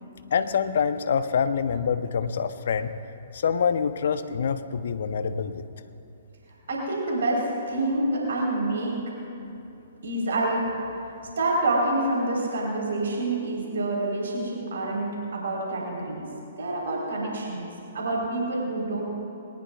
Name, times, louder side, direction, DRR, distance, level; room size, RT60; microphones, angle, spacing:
voice 1, 0.3-2.9 3.3-5.6, left 6 dB, 60° left, 11 dB, 0.8 m, -26 dB
voice 2, 6.7-8.9 10.0-10.7 11.4-16.2 16.6-17.7 17.9-19.0, right 2 dB, 65° right, -3 dB, 4.0 m, -27 dB
22.0 x 19.0 x 2.4 m, 2.9 s
figure-of-eight pair, 120°, 0 cm